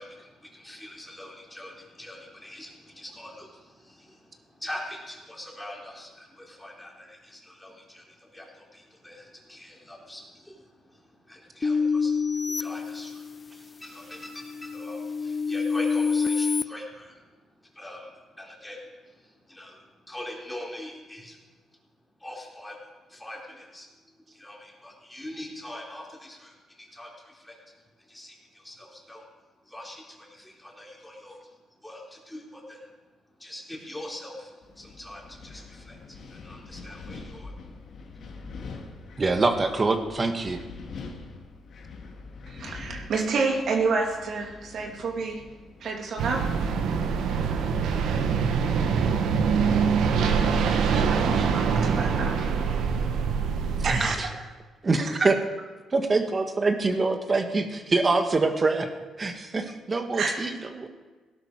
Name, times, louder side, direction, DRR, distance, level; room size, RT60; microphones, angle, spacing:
voice 1, 0.0-21.4 22.2-22.8 23.1-23.9 24.3-27.6 28.0-29.3 29.6-33.0 33.4-37.7, left 1 dB, 10° left, 4.0 m, -43 dB
sound 1, 11.6-13.6 14.1-16.6, left 5 dB, 30° left, 0.4 m, -27 dB
Wind, 34.6-46.1, left 4 dB, 60° left, 2.1 m, -44 dB
voice 2, 39.2-40.6 53.8-54.4 54.8-55.4 55.9-58.9 59.2-60.9, right 3 dB, 30° right, 1.5 m, -25 dB
voice 3, 42.5-45.4 45.8-46.4 50.4-52.5 53.8-54.1 60.2-60.3, right 4 dB, 65° right, 2.6 m, -29 dB
sound 2, 46.2-54.0, right 6 dB, 85° right, 1.3 m, -24 dB
17.0 x 11.5 x 4.8 m
cardioid pair, 90°, 0 cm